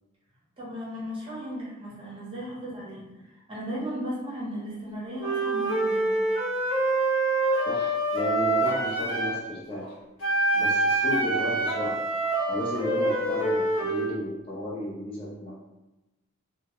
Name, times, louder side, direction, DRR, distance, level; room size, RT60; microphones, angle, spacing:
voice 1, 0.6-3.2 3.5-6.1, equal, 25° right, -6 dB, 0.7 m, -36 dB
Wind instrument woodwind instrument, 5.2-9.4 10.2-14.1, right 2 dB, 60° left, 0.7 m, -26 dB
voice 2, 7.7-10.0 10.5-12.0 12.5-15.5, left 1 dB, 25° left, -6 dB, 0.4 m, -33 dB
2.3 x 2.0 x 2.8 m, 1.0 s
head